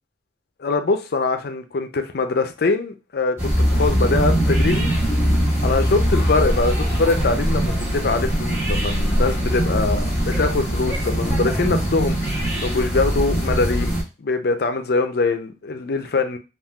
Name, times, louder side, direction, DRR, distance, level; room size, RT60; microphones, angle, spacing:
voice 1, 0.6-4.9 5.6-16.4, left 3 dB, 60° left, 0.5 m, -23 dB
sound 1, 3.4-14.0, equal, 15° right, 1.2 m, -21 dB
3.6 x 2.4 x 2.2 m
head